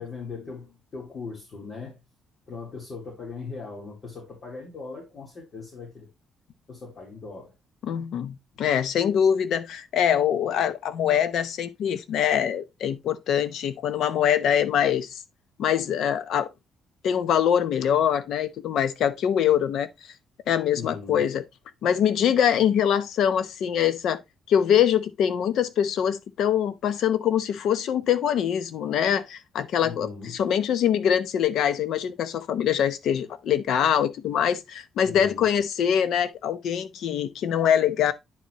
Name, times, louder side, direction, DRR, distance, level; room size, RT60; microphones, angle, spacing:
voice 1, 0.0-2.0 2.5-6.1 6.7-7.5 20.7-21.2 29.8-30.4 35.0-35.4, left 4 dB, 50° left, 3.5 m, -39 dB
voice 2, 7.8-15.2 15.6-16.5 17.0-19.9 20.5-21.4 21.8-24.2 24.5-38.1, left 9 dB, 75° left, 0.8 m, -24 dB
9.8 x 4.7 x 3.0 m
cardioid pair, 90°, 0 cm